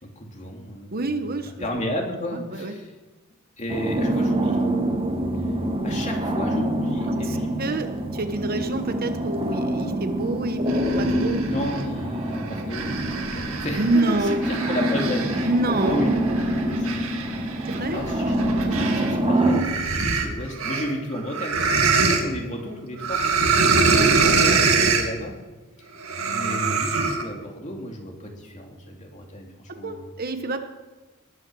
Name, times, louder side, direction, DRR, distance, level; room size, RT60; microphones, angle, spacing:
voice 1, 0.0-2.9 3.6-4.6 5.8-7.6 11.4-16.1 16.6-17.1 17.9-18.3 18.7-23.6 23.8-25.3 26.2-30.1, equal, 35° left, 1 dB, 2.7 m, -33 dB
voice 2, 0.9-1.7 2.3-2.7 7.2-11.4 13.8-14.4 15.4-16.0 17.6-18.0 23.7-24.1 29.7-30.7, right 2 dB, 45° right, 7 dB, 1.1 m, -27 dB
sound 1, 3.7-19.6, right 1 dB, 25° right, 1.5 m, -25 dB
sound 2, 10.7-11.8 12.4-19.1 19.4-22.2 23.0-25.1 26.0-27.2, right 4 dB, 75° right, 2.2 m, -24 dB
20.0 x 9.8 x 6.3 m, 1.2 s
head